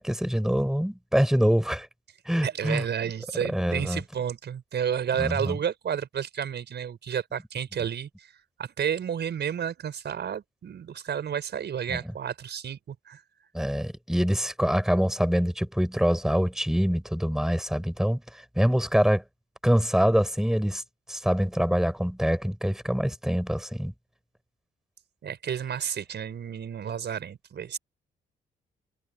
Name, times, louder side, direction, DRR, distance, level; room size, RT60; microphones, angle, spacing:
voice 1, 0.0-1.9 2.2-2.8 3.5-4.0 5.2-5.6 11.9-12.0 13.5-19.2 19.6-20.8 21.1-23.9, equal, ahead, 6.6 m, -25 dB
voice 2, 2.4-13.2 25.2-27.8, right 8 dB, 65° right, 5.5 m, -31 dB
supercardioid pair, 65°, 19 cm